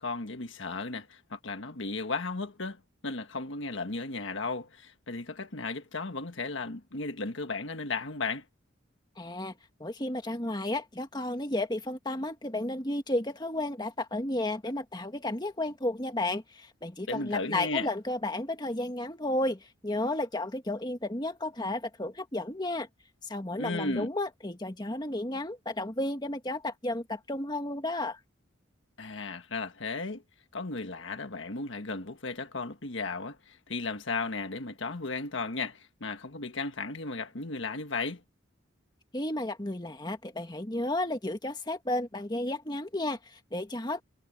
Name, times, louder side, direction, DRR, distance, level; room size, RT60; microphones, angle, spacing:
voice 1, 0.0-8.4 17.1-17.9 23.5-24.1 29.0-30.2 30.5-38.2, left 3 dB, 65° left, 1.5 m, -35 dB
voice 2, 9.2-9.5 9.8-22.9 23.2-28.2 39.1-44.0, left 1 dB, 20° left, 1.9 m, -33 dB
head